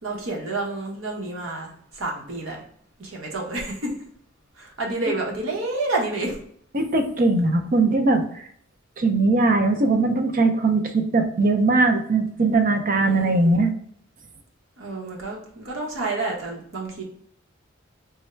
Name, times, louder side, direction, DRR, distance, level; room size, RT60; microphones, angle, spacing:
voice 1, 0.0-2.6 3.0-3.9 4.6-6.4 12.8-13.6 14.8-17.0, right 2 dB, 85° right, -1 dB, 1.1 m, -29 dB
voice 2, 6.7-8.5 9.0-13.7, right 3 dB, 45° right, 6 dB, 0.5 m, -20 dB
3.5 x 2.2 x 4.3 m, 0.63 s
head